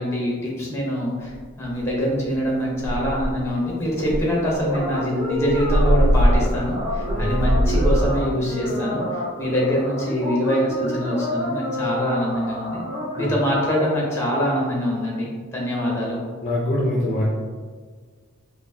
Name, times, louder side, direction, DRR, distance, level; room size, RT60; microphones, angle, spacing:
voice 1, 0.0-1.3 1.6-9.0 9.4-12.8 13.2-16.2, equal, 10° left, -4 dB, 0.9 m, -24 dB
sound 1, 1.3-1.4 1.8-2.1 2.4-2.5 2.8-3.5 4.0-8.2, equal, 75° right, 0.4 m, -21 dB
sound 2, 4.6-13.8, left 1 dB, 25° right, 0.6 m, -29 dB
voice 2, 16.4-17.2, left 1 dB, 30° left, -5 dB, 0.5 m, -24 dB
4.4 x 2.6 x 2.7 m, 1.5 s
head